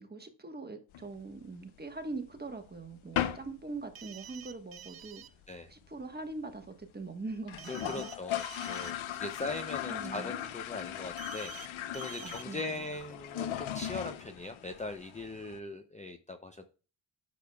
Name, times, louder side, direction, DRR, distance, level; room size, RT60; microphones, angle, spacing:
voice 1, 0.0-5.2 5.7-8.1 9.9-10.3 12.2-12.8, right 3 dB, 20° right, 1.3 m, -42 dB
sound 1, 0.9-2.0 2.4-2.5 2.7-2.9 3.2-3.6 3.8-3.9 4.3-4.4 4.6-5.1 5.4-5.5 5.7-5.8 6.0-6.1 6.6-6.7 7.0-7.1 7.4-15.6, left 11 dB, 85° left, 0.8 m, -38 dB
sound 2, 4.0-5.3 7.6-8.9 11.2-11.7 11.9-12.4, right 9 dB, 50° right, 0.8 m, -48 dB
voice 2, 7.7-16.6, left 2 dB, 15° left, 0.6 m, -40 dB
8.3 x 6.9 x 2.3 m
cardioid pair, 90°, 46 cm